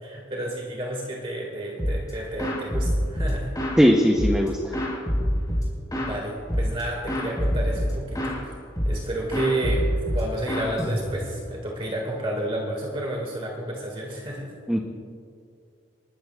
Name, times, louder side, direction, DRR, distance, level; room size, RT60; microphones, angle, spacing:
voice 1, 0.0-3.5 6.0-14.5, right 1 dB, 30° right, -1 dB, 1.8 m, -31 dB
sound 1, 1.8-2.1 2.4-3.8 4.2-6.2 6.5-6.8 7.1-8.4 8.8-9.1 9.3-11.4, equal, 20° left, 4.0 m, -26 dB
voice 2, 3.8-4.7 14.7-14.8, equal, 5° right, 2 dB, 0.6 m, -19 dB
29.0 x 13.0 x 2.3 m, 2.5 s
head